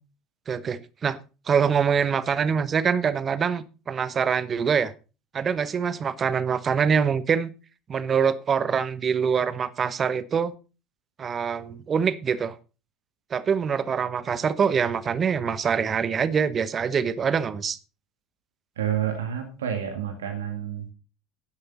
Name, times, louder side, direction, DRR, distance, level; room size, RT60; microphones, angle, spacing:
voice 1, 0.5-1.2 1.5-4.9 5.3-7.5 7.9-10.5 11.2-12.5 13.3-17.8, right 6 dB, 35° right, 16 dB, 1.1 m, -24 dB
voice 2, 18.8-20.9, right 9 dB, 75° right, 5 dB, 1.8 m, -29 dB
11.5 x 11.0 x 3.9 m, 0.32 s
figure-of-eight pair, 65°, 0 cm